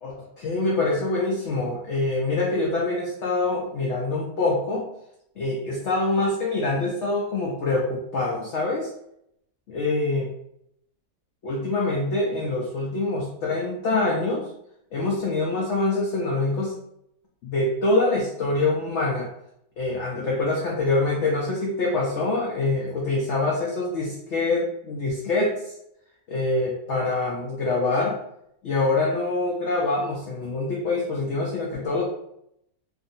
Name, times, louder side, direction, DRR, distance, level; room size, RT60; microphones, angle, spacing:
voice 1, 0.0-4.9 5.4-8.9 9.7-10.3 11.4-14.5 14.9-16.8 17.4-19.3 19.8-25.7 26.3-28.2 28.6-32.0, left 2 dB, 70° left, -3 dB, 0.7 m, -25 dB
2.6 x 2.5 x 2.6 m, 0.76 s
omnidirectional pair, 1.7 m